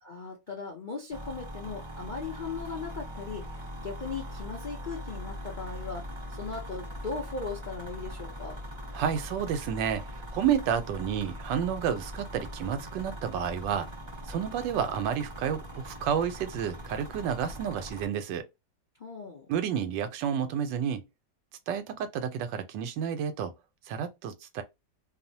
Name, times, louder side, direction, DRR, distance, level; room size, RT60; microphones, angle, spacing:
voice 1, 0.0-3.5 3.8-8.6 19.0-19.5, left 4 dB, 75° left, 0.4 m, -38 dB
sound 1, 1.1-18.1, equal, 40° right, 0.4 m, -41 dB
voice 2, 8.9-13.9 14.3-18.5 19.5-21.0 21.7-23.5 23.9-24.6, right 8 dB, 85° right, 1.3 m, -30 dB
2.9 x 2.0 x 2.7 m
omnidirectional pair, 1.9 m